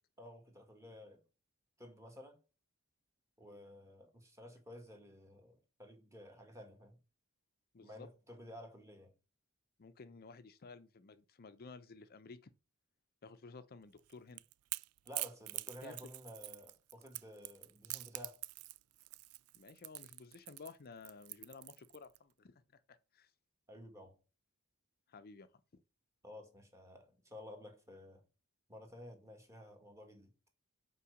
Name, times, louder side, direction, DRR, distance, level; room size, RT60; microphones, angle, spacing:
voice 1, 0.2-1.2 1.8-2.4 3.4-7.0 7.8-9.1 15.0-18.4 23.7-24.2 26.2-28.3 28.7-30.3, left 1 dB, 15° right, 1.7 m, -53 dB
voice 2, 7.7-8.1 9.8-12.5 13.2-14.4 15.8-15.9 19.5-22.6 22.9-23.3 25.1-25.5, left 4 dB, 45° left, 0.5 m, -54 dB
Crackle / Crack, 14.0-22.2, right 19 dB, 85° right, 0.3 m, -45 dB
5.6 x 4.6 x 6.3 m
head